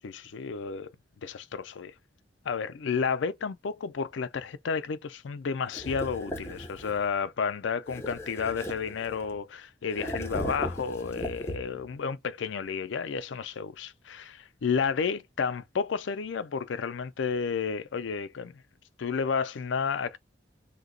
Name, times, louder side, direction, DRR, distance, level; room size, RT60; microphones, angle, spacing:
voice 1, 0.0-0.9 1.2-1.9 2.4-18.6 19.0-20.2, left 6 dB, 75° left, 0.4 m, -31 dB
sound 1, 5.7-7.1 7.9-9.4 9.9-11.9, equal, 15° left, 0.6 m, -37 dB
2.8 x 2.2 x 3.8 m
head